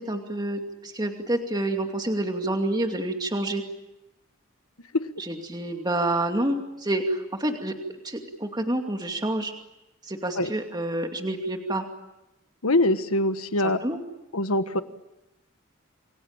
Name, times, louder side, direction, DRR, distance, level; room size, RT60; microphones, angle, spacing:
voice 1, 0.0-3.6 5.2-7.7 8.0-9.5 10.0-11.9 13.6-14.0, right 1 dB, 20° right, 4 dB, 2.5 m, -28 dB
voice 2, 12.6-13.8 14.3-14.8, left 1 dB, 85° left, 10 dB, 1.5 m, -23 dB
28.5 x 22.5 x 8.9 m, 0.95 s
head